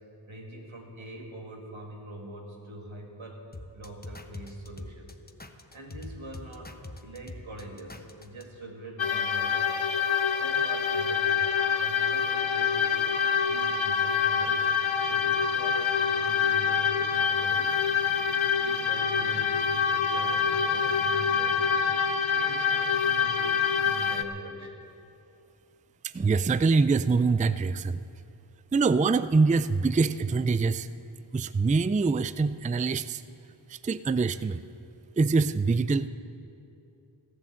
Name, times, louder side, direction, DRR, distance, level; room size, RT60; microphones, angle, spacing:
voice 1, 0.3-3.5 3.7-5.2 5.7-6.8 7.0-9.9 10.4-13.1 13.5-14.7 15.1-17.8 18.2-23.6 23.8-24.8, right 1 dB, 90° right, 0 dB, 2.2 m, -44 dB
sound 1, 3.5-8.4, left 2 dB, 20° left, 0.9 m, -43 dB
sound 2, 9.0-24.2, left 7 dB, 90° left, 0.8 m, -26 dB
voice 2, 26.1-28.0 28.7-30.9 31.3-33.2 33.7-34.6 35.2-36.1, right 4 dB, 20° right, 14 dB, 0.3 m, -24 dB
15.0 x 11.0 x 7.6 m, 2.7 s
wide cardioid pair, 45°, 46 cm